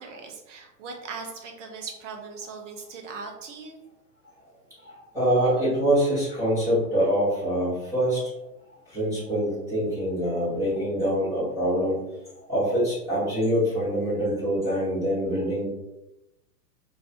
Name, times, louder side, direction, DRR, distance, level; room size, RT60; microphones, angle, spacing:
voice 1, 0.0-3.8, right 4 dB, 50° right, 2 dB, 0.6 m, -39 dB
voice 2, 4.8-8.2 8.9-12.0 12.5-15.6, equal, 5° right, -11 dB, 0.9 m, -25 dB
2.5 x 2.4 x 2.3 m, 0.93 s
figure-of-eight pair, 115°, 50 cm